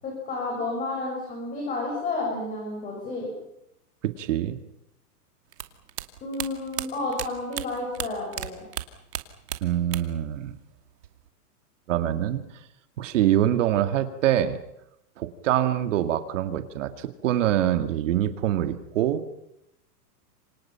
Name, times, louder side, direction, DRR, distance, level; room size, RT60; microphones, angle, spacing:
voice 1, 0.0-3.3 6.2-8.6, left 2 dB, 15° left, -1 dB, 6.9 m, -31 dB
voice 2, 4.0-4.6 9.6-10.5 11.9-12.4 13.0-14.6 15.2-19.2, right 12 dB, 50° right, 9 dB, 2.2 m, -24 dB
sound 1, 5.5-8.5 8.7-10.3 10.5-11.3, right 11 dB, 80° right, 2.7 m, -34 dB
29.0 x 26.0 x 5.8 m, 0.79 s
supercardioid pair, 165°, 47 cm